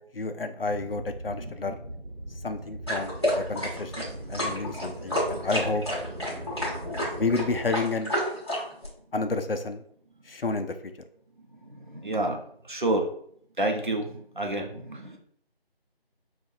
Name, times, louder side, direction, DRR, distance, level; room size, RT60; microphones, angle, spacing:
voice 1, 0.1-1.8 2.4-5.8 7.1-8.1 9.1-9.8 10.3-10.9, left 3 dB, 65° left, 8 dB, 0.5 m, -30 dB
sound 1, 0.7-7.7, right 1 dB, 75° right, 1.2 m, -40 dB
voice 2, 1.3-1.8 3.6-5.1 11.5-13.1 13.6-15.2, right 1 dB, 50° right, 2 dB, 0.7 m, -31 dB
sound 2, 2.9-8.9, equal, 25° left, 1.2 m, -30 dB
5.6 x 2.4 x 2.7 m, 0.64 s
figure-of-eight pair, 170°, 31 cm